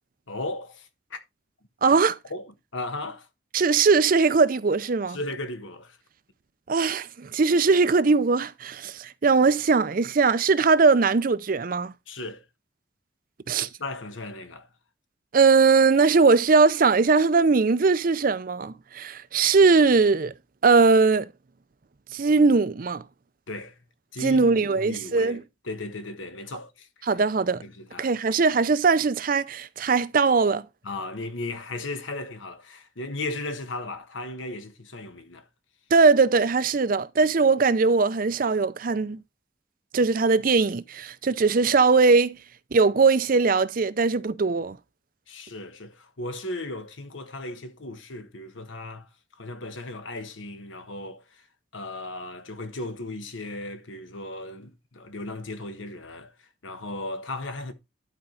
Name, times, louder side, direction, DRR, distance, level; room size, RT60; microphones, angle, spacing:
voice 1, 0.3-1.2 2.3-3.3 5.1-6.0 12.1-12.4 13.5-14.7 23.5-23.7 24.1-25.4 25.6-27.1 27.6-28.1 30.8-35.5 45.3-49.1 49.4-51.5 51.7-57.7, left 2 dB, 85° left, 1.3 m, -36 dB
voice 2, 1.8-2.2 3.5-5.2 6.7-11.9 13.5-13.7 15.3-20.3 20.6-21.3 22.1-23.0 24.2-25.4 27.1-27.6 28.0-30.6 35.9-39.2 39.9-42.4 42.7-44.8, right 4 dB, 45° right, 0.5 m, -20 dB
11.5 x 4.5 x 3.8 m
head